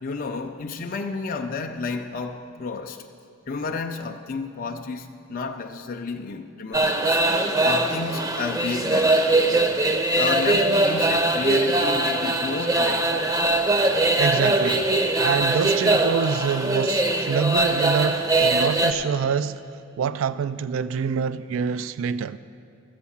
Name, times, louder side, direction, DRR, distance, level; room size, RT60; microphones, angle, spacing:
voice 1, 0.0-3.1 3.5-7.2 7.6-9.2 10.1-13.2, left 4 dB, 45° left, 0.5 m, -31 dB
sound 1, 6.7-18.9, right 2 dB, 20° right, 0.6 m, -21 dB
voice 2, 14.2-14.9 15.2-19.6 20.0-22.4, right 6 dB, 75° right, 0.3 m, -26 dB
13.5 x 8.1 x 7.1 m
head